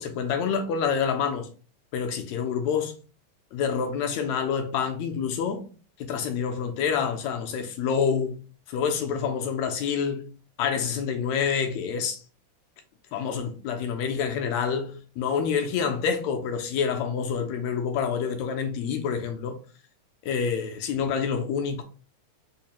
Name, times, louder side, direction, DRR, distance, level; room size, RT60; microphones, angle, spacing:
voice 1, 0.0-1.5 1.9-3.0 3.5-5.7 6.0-8.4 8.7-10.3 10.6-12.2 13.1-19.6 20.2-21.8, left 6 dB, 80° left, 1.6 m, -27 dB
4.6 x 2.4 x 2.8 m
omnidirectional pair, 3.4 m